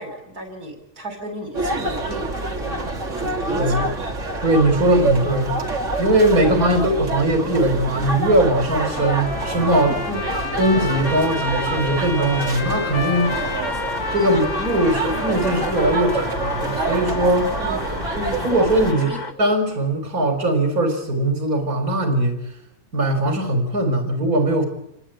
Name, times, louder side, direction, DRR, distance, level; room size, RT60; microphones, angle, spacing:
voice 1, 0.0-2.3 2.6-2.9 3.2-4.0 4.8-5.1 6.5-6.7 10.1-10.4 17.6-18.6 19.0-19.2, equal, 90° right, 6 dB, 6.0 m, -33 dB
sound 1, 1.5-18.9, right 3 dB, 55° right, 3.0 m, -27 dB
voice 2, 3.5-3.9 4.4-5.5 6.0-10.1 10.6-13.4 14.1-17.5 18.4-19.1 19.4-22.4 22.9-24.6, right 1 dB, 75° right, 4 dB, 4.4 m, -20 dB
Trumpet, 8.8-17.6, left 4 dB, 75° left, 2.5 m, -31 dB
sound 2, 13.2-19.3, left 3 dB, 30° left, 1.4 m, -34 dB
28.0 x 22.0 x 8.9 m, 0.79 s
omnidirectional pair, 1.6 m